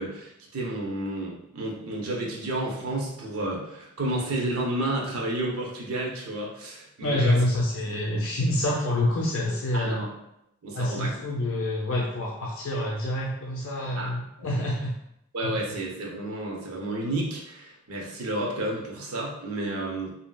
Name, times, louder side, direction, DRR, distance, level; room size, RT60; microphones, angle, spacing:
voice 1, 0.0-7.4 7.8-8.0 9.7-10.2 10.6-11.1 14.0-14.1 14.4-14.5 15.3-20.2, right 1 dB, 85° right, -1 dB, 0.7 m, -31 dB
voice 2, 7.0-10.0 10.7-14.9 15.4-15.6, left 1 dB, 75° left, -3 dB, 0.5 m, -27 dB
3.1 x 2.7 x 2.3 m, 0.78 s
head